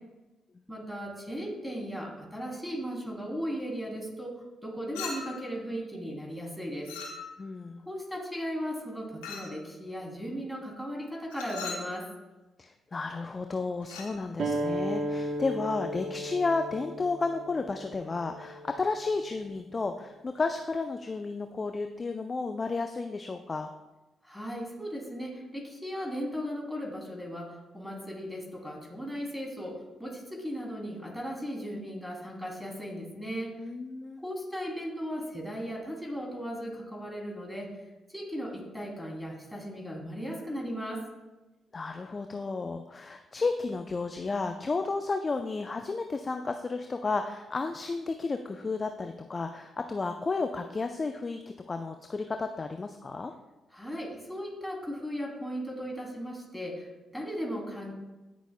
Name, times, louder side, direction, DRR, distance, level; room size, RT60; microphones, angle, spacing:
voice 1, 0.7-6.9 7.8-12.1 24.2-33.5 34.2-37.8 38.1-41.0 53.7-57.9, equal, ahead, -2 dB, 2.9 m, -37 dB
Chink clink, 4.9-5.5 6.8-7.5 9.2-9.6 11.3-11.9 13.8-14.2, left 5 dB, 90° left, 1.2 m, -39 dB
voice 2, 7.4-7.8 12.6-23.7 33.6-34.2 41.7-51.4 51.7-53.3, left 3 dB, 35° left, 6 dB, 0.5 m, -32 dB
sound 1, 14.4-19.5, right 1 dB, 60° right, 0.9 m, -35 dB
17.5 x 6.2 x 2.2 m, 1.1 s
hypercardioid pair, 45°, 0 cm